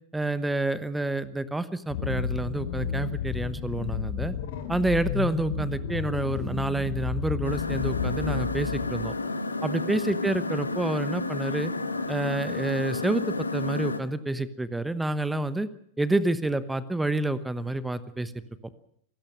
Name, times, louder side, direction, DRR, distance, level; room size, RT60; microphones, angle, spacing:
voice 1, 0.1-4.3 4.7-9.1 9.6-11.7 12.1-15.7 16.0-18.3, right 2 dB, 5° right, 15 dB, 1.1 m, -28 dB
sound 1, 1.9-9.0, left 7 dB, 55° left, 3.2 m, -32 dB
sound 2, 7.4-14.0, left 2 dB, 80° left, 1.6 m, -31 dB
28.5 x 16.0 x 6.3 m, 0.70 s
figure-of-eight pair, 90°, 0 cm